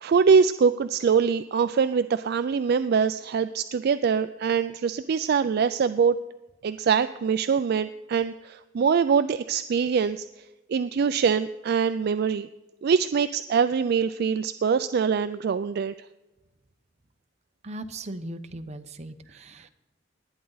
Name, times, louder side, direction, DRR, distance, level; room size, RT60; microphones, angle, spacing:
voice 1, 0.0-6.2 6.6-10.3 10.7-12.5 12.8-15.9, right 6 dB, 55° right, 12 dB, 0.3 m, -23 dB
voice 2, 17.6-19.7, right 1 dB, 35° right, 8 dB, 0.8 m, -38 dB
19.5 x 9.2 x 3.9 m, 1.1 s
head